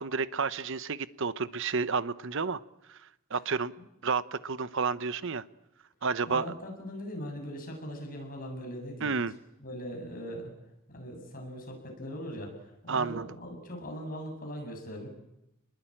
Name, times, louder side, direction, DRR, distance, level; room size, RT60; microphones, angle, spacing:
voice 1, 0.0-2.6 2.9-3.0 3.3-3.7 4.0-5.4 6.0-6.4 9.0-9.3 12.9-13.3, right 5 dB, 60° right, 15 dB, 0.9 m, -30 dB
voice 2, 6.3-9.3 9.6-10.5 10.9-15.1, equal, 40° left, 2 dB, 7.7 m, -40 dB
29.0 x 21.0 x 8.8 m, 0.89 s
head